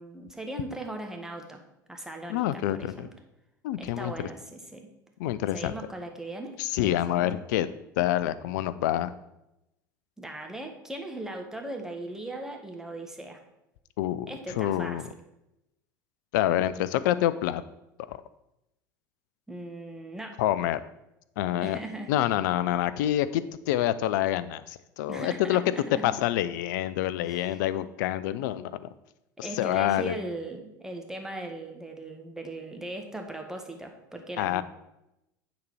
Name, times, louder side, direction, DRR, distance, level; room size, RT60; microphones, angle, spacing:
voice 1, 0.0-1.6 1.9-3.1 3.8-4.9 5.5-7.4 10.2-13.4 14.3-15.0 19.5-20.4 21.6-22.2 25.1-26.2 27.2-27.6 29.4-34.6, right 1 dB, 5° right, 3 dB, 1.5 m, -39 dB
voice 2, 2.3-3.1 3.6-4.3 5.2-5.7 6.6-7.7 8.0-9.1 14.0-14.3 14.6-15.0 16.3-17.6 18.1-18.2 20.4-20.8 21.4-21.8 22.1-25.6 26.0-28.9 29.4-30.1 34.4-34.6, left 13 dB, 65° left, 16 dB, 0.5 m, -27 dB
9.4 x 4.1 x 6.1 m, 0.89 s
figure-of-eight pair, 70°, 11 cm